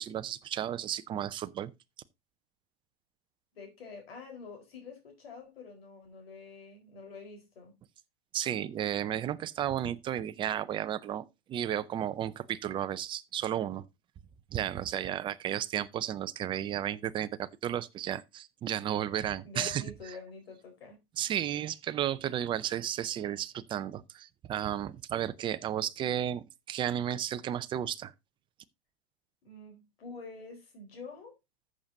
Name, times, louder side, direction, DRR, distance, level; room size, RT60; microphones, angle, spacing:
voice 1, 0.0-1.7 8.3-13.9 14.5-19.8 21.2-28.1, right 10 dB, 15° right, 0.5 m, -33 dB
voice 2, 3.5-7.8 19.4-21.0 29.4-31.4, left 4 dB, 85° left, 4.3 m, -47 dB
14.0 x 7.5 x 2.7 m
hypercardioid pair, 140°, 29 cm